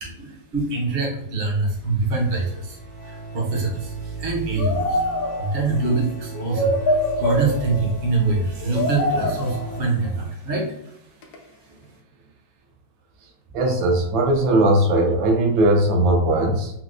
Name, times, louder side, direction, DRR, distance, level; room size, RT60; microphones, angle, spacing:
voice 1, 0.0-2.8 3.0-5.0 5.4-10.9, right 3 dB, 55° right, -2 dB, 0.7 m, -24 dB
sound 1, 1.6-9.9, right 4 dB, 45° left, 0.7 m, -36 dB
sound 2, 4.6-5.8 6.3-8.0 8.6-9.9 11.2-11.4, left 1 dB, 70° left, 0.9 m, -24 dB
voice 2, 13.5-16.7, right 1 dB, 80° right, 2 dB, 1.4 m, -19 dB
4.5 x 2.0 x 2.4 m, 0.78 s
omnidirectional pair, 2.1 m